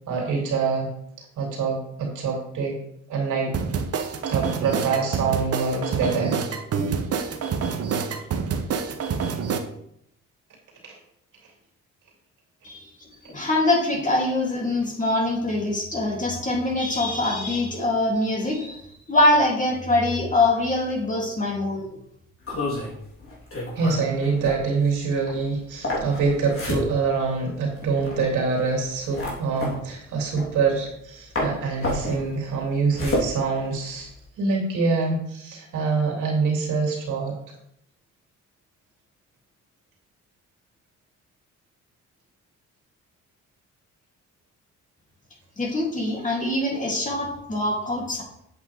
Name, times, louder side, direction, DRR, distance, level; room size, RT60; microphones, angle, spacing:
voice 1, 0.1-0.9 1.4-2.8 3.1-3.5 4.3-6.4 10.8-11.0 23.7-34.1 34.4-37.3, right 4 dB, 80° right, 0 dB, 2.9 m, -25 dB
sound 1, 3.5-9.6, right 6 dB, 50° right, 1.0 m, -27 dB
voice 2, 13.2-18.8 19.1-21.9 45.6-48.2, left 2 dB, 25° left, -2 dB, 2.9 m, -23 dB
sound 2, 22.4-31.1 31.4-34.2, left 1 dB, 50° left, 3.6 m, -31 dB
8.2 x 7.9 x 3.5 m, 0.74 s
cardioid pair, 90°, 30 cm